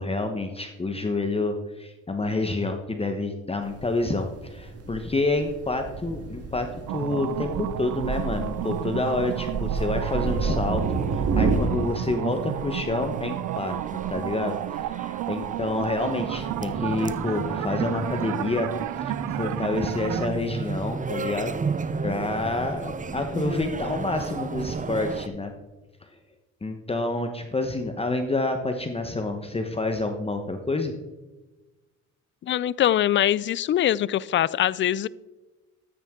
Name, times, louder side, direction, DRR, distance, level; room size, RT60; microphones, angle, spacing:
voice 1, 0.0-13.8 14.1-18.7 19.0-21.5 22.0-25.5 26.6-30.9, left 2 dB, 20° left, 1.1 m, -28 dB
Thunder, 3.6-11.6, right 4 dB, 55° right, 1.7 m, -30 dB
sound 1, 6.9-20.3, right 15 dB, 75° right, 0.5 m, -32 dB
sound 2, 7.9-25.3, right 4 dB, 25° right, 0.7 m, -35 dB
voice 2, 32.4-35.1, left 11 dB, 40° left, 0.4 m, -23 dB
13.5 x 9.3 x 3.7 m
cardioid pair, 90°, 30 cm